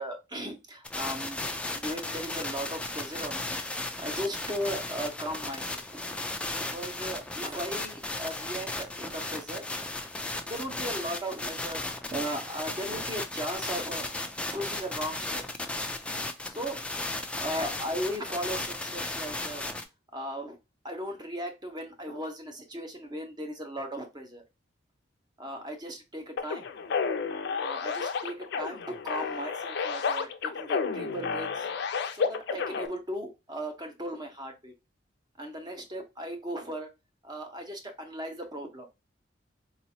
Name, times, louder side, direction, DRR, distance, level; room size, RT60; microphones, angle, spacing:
voice 1, 0.0-1.4 1.7-3.6 4.0-6.0 6.7-9.6 10.5-11.8 12.1-14.1 14.5-15.4 16.5-16.8 17.4-19.6 20.1-20.6 20.8-24.4 25.4-26.7 27.6-31.7 32.1-34.7 35.4-36.9 37.2-38.9, equal, 25° right, 5 dB, 0.7 m, -37 dB
sound 1, 0.8-19.8, left 2 dB, 5° left, 0.4 m, -35 dB
sound 2, 26.4-32.9, left 5 dB, 65° left, 0.5 m, -31 dB
3.9 x 2.9 x 2.7 m, 0.25 s
head